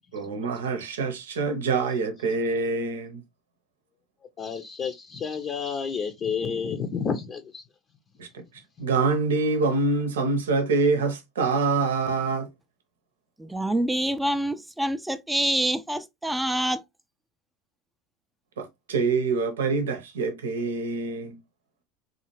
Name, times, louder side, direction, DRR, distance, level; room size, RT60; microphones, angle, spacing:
voice 1, 0.1-3.2 8.2-8.4 8.8-12.5 18.6-21.4, right 4 dB, 90° right, 0.8 m, -25 dB
voice 2, 4.4-7.6 8.8-8.9, left 6 dB, 40° left, 0.6 m, -30 dB
voice 3, 13.4-16.8, right 1 dB, 5° right, 0.4 m, -26 dB
3.8 x 2.7 x 3.0 m
hypercardioid pair, 95°, 0 cm